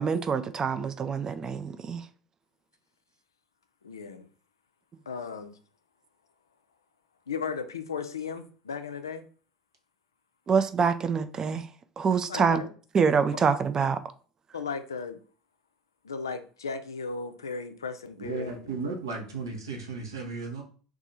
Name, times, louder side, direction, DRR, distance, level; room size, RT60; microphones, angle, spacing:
voice 1, 0.0-2.1 10.5-11.7 12.0-12.6 12.9-14.0, right 6 dB, 30° right, 0.3 m, -25 dB
voice 2, 3.8-4.3 5.1-5.6 7.3-9.2 12.3-12.7 13.3-13.4 14.5-15.2 16.0-18.7, left 5 dB, 85° left, 0.4 m, -36 dB
voice 3, 18.2-20.6, right 4 dB, 80° right, 0.8 m, -35 dB
2.6 x 2.4 x 4.1 m
figure-of-eight pair, 70°, 2 cm